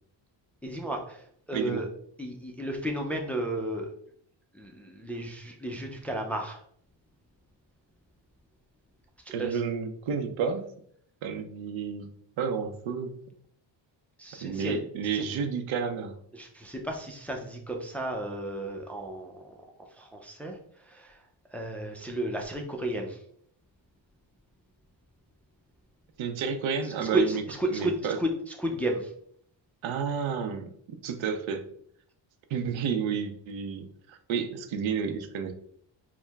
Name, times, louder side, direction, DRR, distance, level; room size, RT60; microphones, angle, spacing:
voice 1, 0.6-1.9 2.2-3.9 4.5-6.6 9.2-9.6 14.2-14.8 15.1-15.2 16.3-19.5 19.9-21.2 21.5-23.2 26.8-29.1, right 1 dB, 5° left, 2 dB, 0.3 m, -33 dB
voice 2, 1.5-1.8 9.3-10.6 11.2-12.1 12.4-13.1 14.4-16.1 26.2-27.4 27.7-28.2 29.8-31.7 32.5-35.5, right 6 dB, 85° right, 7 dB, 0.7 m, -31 dB
4.4 x 2.2 x 3.4 m, 0.64 s
cardioid pair, 130°, 46 cm